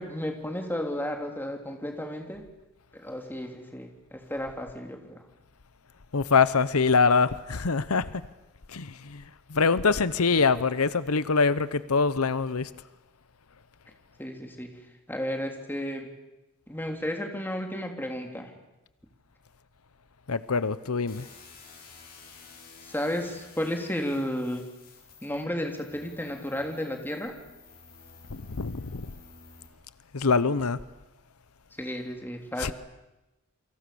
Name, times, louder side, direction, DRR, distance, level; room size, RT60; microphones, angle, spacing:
voice 1, 0.0-2.4 2.9-5.2 14.2-14.8 15.1-16.1 16.7-18.5 22.8-24.7 25.2-27.4 31.7-32.7, equal, 10° left, 3.4 m, -33 dB
voice 2, 6.1-8.2 8.7-9.2 9.5-12.7 20.3-21.3 28.3-29.1 30.1-30.8 32.6-32.7, left 4 dB, 80° left, 0.9 m, -24 dB
sound 1, 21.1-29.7, left 4 dB, 45° left, 6.5 m, -51 dB
29.0 x 24.5 x 7.0 m
head